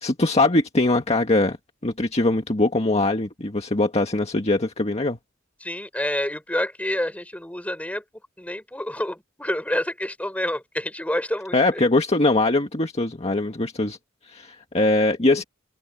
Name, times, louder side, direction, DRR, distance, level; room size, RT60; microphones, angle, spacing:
voice 1, 0.0-1.6 1.8-5.2 11.5-14.0 14.3-15.4, left 2 dB, 30° left, 1.8 m, -21 dB
voice 2, 5.6-8.0 8.4-11.9, left 1 dB, 5° left, 5.6 m, -28 dB
open air
head